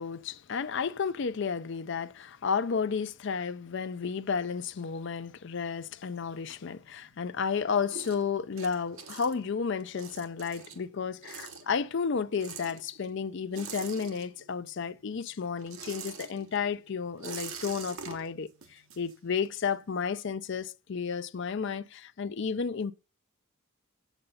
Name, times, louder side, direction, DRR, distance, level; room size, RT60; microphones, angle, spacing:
voice 1, 0.0-22.9, left 6 dB, 55° left, 0.5 m, -32 dB
sound 1, 5.5-7.2 7.5-14.7 15.0-19.7, right 6 dB, 70° right, 1.3 m, -45 dB
7.8 x 7.1 x 5.5 m
head